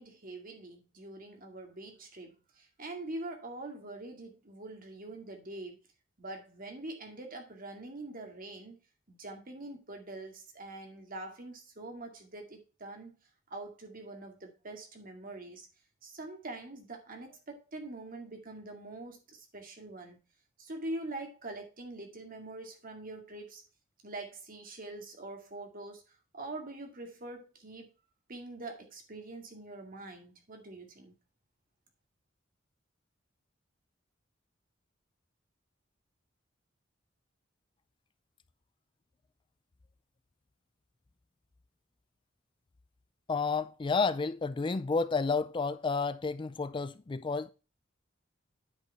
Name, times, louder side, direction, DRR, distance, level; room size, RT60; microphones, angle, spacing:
voice 1, 0.0-5.8 6.2-8.8 9.1-13.1 13.5-15.7 16.0-20.2 20.6-23.6 24.0-26.0 26.3-27.9 28.3-31.1, right 2 dB, 45° right, 2.2 m, -44 dB
voice 2, 43.3-47.5, left 4 dB, 25° left, 0.4 m, -31 dB
9.5 x 5.4 x 4.4 m
head